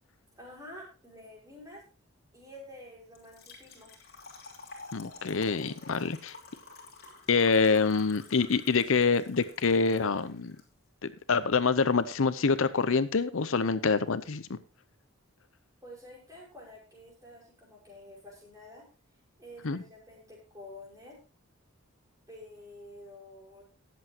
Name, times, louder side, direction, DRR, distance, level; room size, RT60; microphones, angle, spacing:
voice 1, 0.3-1.8 2.3-3.9 15.8-18.9 19.4-21.2 22.3-23.7, left 1 dB, 15° right, -3 dB, 5.4 m, -49 dB
Trickle dribble / Fill (with liquid), 3.1-10.6, left 3 dB, 45° left, 3.0 m, -50 dB
voice 2, 4.9-6.4 7.3-10.5 11.3-14.6 19.6-19.8, left 4 dB, 70° left, 13 dB, 0.7 m, -26 dB
19.0 x 7.8 x 2.9 m, 0.33 s
head